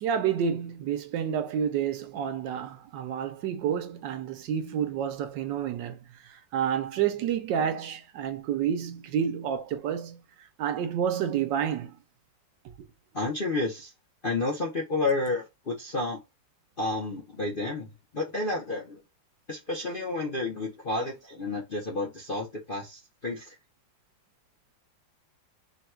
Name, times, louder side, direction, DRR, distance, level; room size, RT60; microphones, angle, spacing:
voice 1, 0.0-12.0, right 8 dB, 75° right, 1.3 m, -29 dB
voice 2, 13.1-13.9 14.2-16.2 16.8-17.9 18.1-19.0 19.5-23.6, left 2 dB, 45° left, 0.7 m, -30 dB
3.9 x 2.3 x 4.3 m
omnidirectional pair, 2.0 m